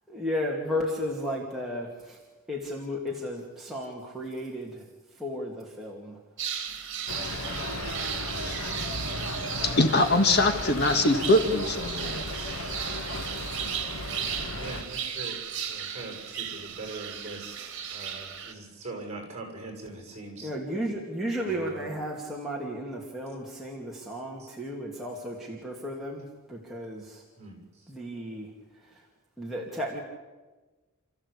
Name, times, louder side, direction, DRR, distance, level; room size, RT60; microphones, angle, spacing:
voice 1, 0.1-2.2 2.5-6.2 20.4-27.2 27.9-28.5 28.7-29.0 29.4-30.0, equal, ahead, 2.7 m, -34 dB
sound 1, 6.4-18.5, right 8 dB, 55° right, 2.5 m, -36 dB
sound 2, 7.1-14.8, left 1 dB, 70° left, 2.1 m, -35 dB
voice 2, 9.6-12.3, left 2 dB, 50° left, 1.8 m, -23 dB
voice 3, 14.5-15.4 15.7-20.5 21.4-21.8 24.4-24.5 27.4-27.6, right 2 dB, 30° right, 6.8 m, -41 dB
29.5 x 14.5 x 8.5 m
head